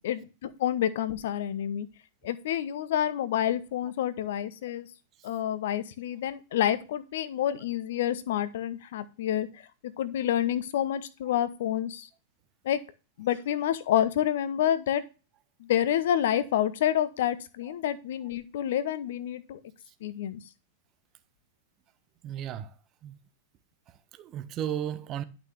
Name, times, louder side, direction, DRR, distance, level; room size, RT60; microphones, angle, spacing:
voice 1, 0.0-1.9 2.2-4.9 5.2-12.1 12.6-12.8 13.2-15.0 15.6-19.6 20.0-20.4, left 10 dB, 55° left, 0.9 m, -28 dB
voice 2, 22.2-22.7 23.0-23.2 23.9-25.2, right 10 dB, 35° right, 0.9 m, -35 dB
11.0 x 6.1 x 3.3 m
figure-of-eight pair, 95°, 0 cm